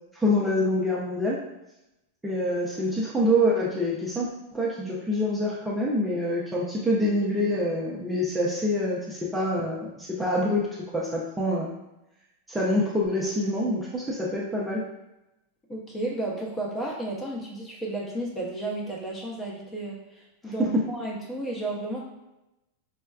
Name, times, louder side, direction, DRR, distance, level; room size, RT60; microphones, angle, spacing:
voice 1, 0.1-1.4 2.2-10.7 10.9-11.7 12.5-14.9 20.6-20.8, left 1 dB, 10° right, -6 dB, 0.5 m, -26 dB
voice 2, 15.7-22.0, right 2 dB, 20° left, -2 dB, 0.8 m, -33 dB
4.3 x 2.2 x 2.3 m, 0.92 s
hypercardioid pair, 125°, 0 cm